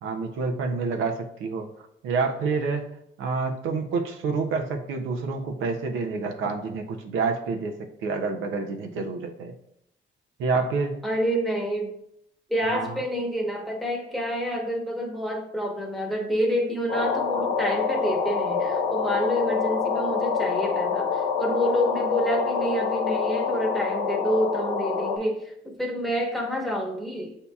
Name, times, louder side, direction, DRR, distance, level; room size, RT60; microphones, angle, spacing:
voice 1, 0.0-1.7 2.0-9.5 10.4-11.0 12.7-13.0, right 4 dB, 90° right, 3 dB, 0.5 m, -28 dB
voice 2, 11.0-11.9 12.5-27.4, equal, ahead, 0 dB, 0.9 m, -28 dB
sound 1, 16.9-25.2, left 5 dB, 75° left, 0.8 m, -26 dB
7.0 x 2.8 x 2.3 m, 0.76 s
cardioid pair, 90°, 20 cm